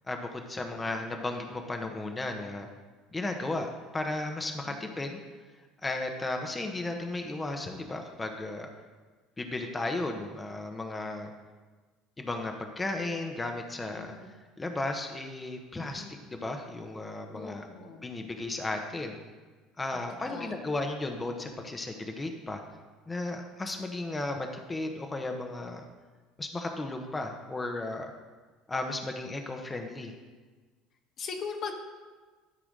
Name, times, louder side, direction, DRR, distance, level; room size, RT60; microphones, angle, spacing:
voice 1, 0.1-2.7 3.1-5.2 5.8-8.7 9.4-11.3 12.2-14.1 14.6-16.0 16.3-17.7 18.0-19.2 19.8-22.6 23.1-25.8 26.4-28.1 28.7-30.1, left 2 dB, 20° left, 4 dB, 1.2 m, -34 dB
voice 2, 4.6-5.0 13.9-14.4 15.9-16.2 17.3-18.1 20.1-20.6 31.2-31.7, left 5 dB, 45° left, 3 dB, 1.3 m, -40 dB
12.5 x 4.9 x 6.3 m, 1.4 s
figure-of-eight pair, 65°, 0 cm